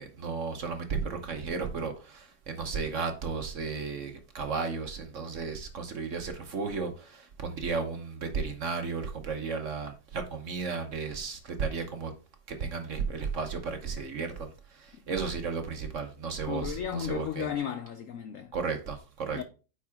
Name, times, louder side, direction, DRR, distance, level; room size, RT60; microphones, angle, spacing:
voice 1, 0.0-12.1 12.5-17.5 18.5-19.4, right 5 dB, 50° right, 1.2 m, -34 dB
voice 2, 16.5-18.5 19.3-19.4, left 9 dB, 70° left, 0.7 m, -34 dB
9.2 x 4.8 x 3.5 m
omnidirectional pair, 2.0 m